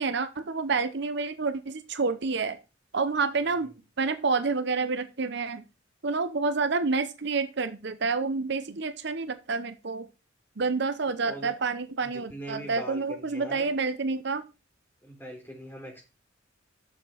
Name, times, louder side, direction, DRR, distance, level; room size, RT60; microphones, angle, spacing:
voice 1, 0.0-2.6 2.9-3.7 4.0-5.6 6.0-10.1 10.6-14.4, right 4 dB, 65° right, 11 dB, 0.8 m, -28 dB
voice 2, 11.2-11.5 12.0-13.7 15.0-16.0, right 1 dB, 10° left, -1 dB, 4.1 m, -41 dB
7.3 x 6.8 x 5.6 m, 0.29 s
head